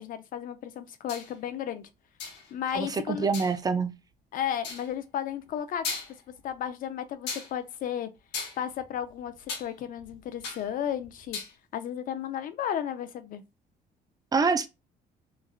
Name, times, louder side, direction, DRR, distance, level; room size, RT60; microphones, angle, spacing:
voice 1, 0.0-1.9 2.5-3.3 4.3-6.0 6.4-8.1 8.6-11.4 11.7-13.4, left 9 dB, 55° left, 0.5 m, -33 dB
sound 1, 1.1-1.3 2.2-2.5 3.3-3.6 4.6-4.9 5.5-5.6 5.8-6.4 7.3-7.5 8.3-9.7 10.0-10.7 11.0-11.5, left 5 dB, 85° left, 0.9 m, -36 dB
voice 2, 2.7-3.9 14.3-14.7, right 4 dB, 20° right, 0.4 m, -26 dB
3.1 x 2.4 x 2.3 m
cardioid pair, 110°, 17 cm